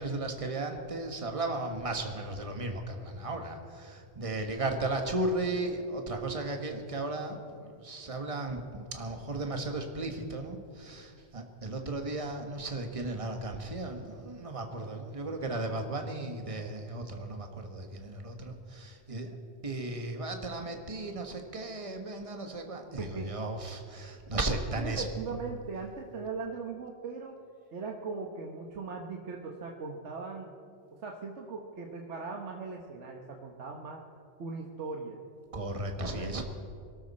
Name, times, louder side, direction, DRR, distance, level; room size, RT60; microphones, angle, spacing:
voice 1, 0.0-19.3 19.6-25.1 35.5-36.4, right 2 dB, 30° right, 4 dB, 1.4 m, -35 dB
voice 2, 23.0-23.4 24.8-27.4 27.7-30.5 31.0-34.0 34.4-35.2 36.0-36.4, right 4 dB, 85° right, 1 dB, 1.4 m, -39 dB
23.5 x 12.5 x 4.2 m, 2.4 s
omnidirectional pair, 1.2 m